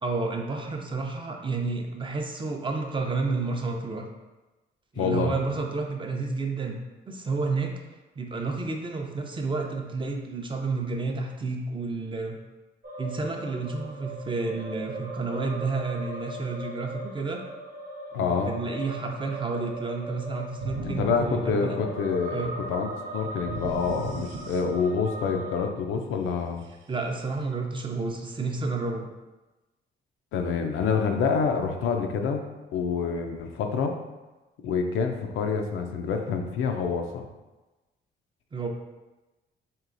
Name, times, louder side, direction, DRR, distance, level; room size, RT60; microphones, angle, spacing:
voice 1, 0.0-4.0 4.9-6.8 7.1-7.7 8.2-12.4 13.0-17.4 18.1-21.8 22.3-22.5 26.9-29.1 38.5-38.7, right 3 dB, 25° right, 2 dB, 0.6 m, -30 dB
voice 2, 5.0-5.3 18.1-18.5 20.8-22.9 23.1-26.6 30.3-34.0 34.6-37.3, left 5 dB, 85° left, 4 dB, 0.5 m, -27 dB
sound 1, 12.8-25.6, right 1 dB, 45° right, 0.9 m, -39 dB
sound 2, 20.6-22.3 23.5-25.1, right 3 dB, 80° right, 0.5 m, -36 dB
4.5 x 3.0 x 2.5 m, 1.1 s
cardioid pair, 90°, 20 cm